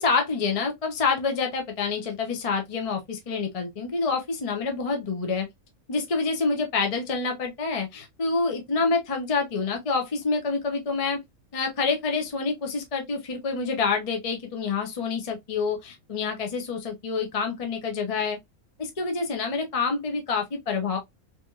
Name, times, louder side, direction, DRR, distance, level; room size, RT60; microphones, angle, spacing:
voice 1, 0.0-5.5 5.9-11.2 11.5-18.4 18.8-21.0, left 4 dB, 40° left, 0.5 m, -27 dB
3.1 x 2.8 x 2.3 m
omnidirectional pair, 1.5 m